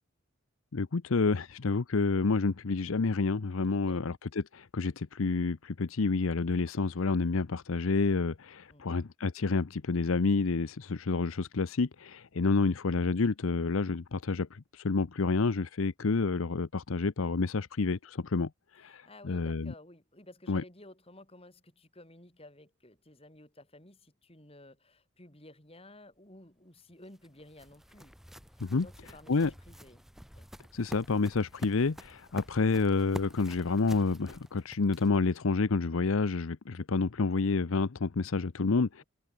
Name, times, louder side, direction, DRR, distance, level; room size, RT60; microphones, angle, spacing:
voice 1, 0.7-18.5 18.7-19.7 20.5-20.6 28.6-28.9 29.3-29.5 30.7-39.0, left 4 dB, 70° left, 0.7 m, -29 dB
voice 2, 3.7-4.0 8.7-9.1 18.8-28.1 28.7-30.0 30.4-30.5, left 1 dB, 25° left, 5.2 m, -54 dB
sound 1, 26.8-35.3, equal, ahead, 1.8 m, -48 dB
head